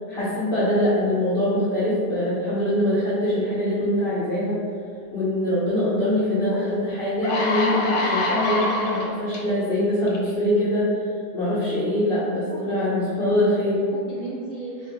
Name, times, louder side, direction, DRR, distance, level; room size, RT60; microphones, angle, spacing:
voice 1, 0.1-4.6 5.1-10.9 11.3-13.8, left 1 dB, 45° left, -11 dB, 0.8 m, -23 dB
sound 1, 6.5-6.6 7.0-9.4 10.1-10.3, left 2 dB, 70° left, 1.1 m, -25 dB
voice 2, 12.5-13.0 13.6-14.9, right 1 dB, 80° right, -7 dB, 0.5 m, -37 dB
4.3 x 3.0 x 2.2 m, 2.4 s
omnidirectional pair, 1.8 m